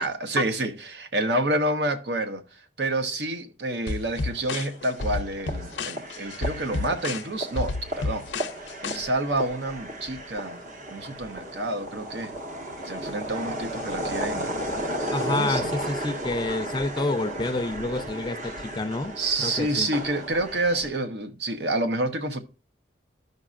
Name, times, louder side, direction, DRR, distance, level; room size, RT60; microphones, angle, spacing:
voice 1, 0.0-8.3 8.8-10.6 10.9-12.3 12.8-14.5 15.3-15.7 19.2-22.4, right 2 dB, 70° right, 0.9 m, -28 dB
sound 1, 3.9-9.0, left 3 dB, 90° left, 0.6 m, -31 dB
sound 2, 4.2-20.9, equal, 45° right, 1.1 m, -34 dB
voice 2, 15.1-19.1 19.4-19.9, left 2 dB, 25° left, 0.5 m, -28 dB
12.5 x 5.3 x 2.5 m
head